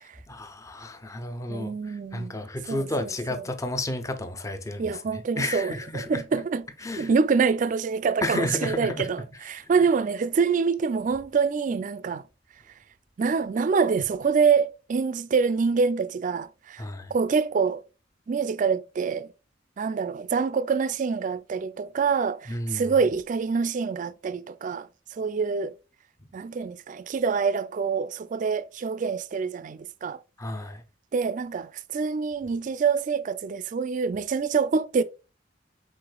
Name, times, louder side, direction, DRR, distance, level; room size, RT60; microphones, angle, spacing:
voice 1, 0.3-6.2 6.8-7.1 8.2-9.1 16.8-17.1 22.5-22.9 30.4-30.8, left 1 dB, 15° left, 0.5 m, -32 dB
voice 2, 1.5-2.4 2.7-3.4 4.8-6.6 7.0-12.2 13.2-16.8 17.1-17.8 18.3-19.3 19.8-25.7 26.3-30.2 31.1-35.0, right 5 dB, 45° right, 0.3 m, -26 dB
4.8 x 4.3 x 2.2 m
head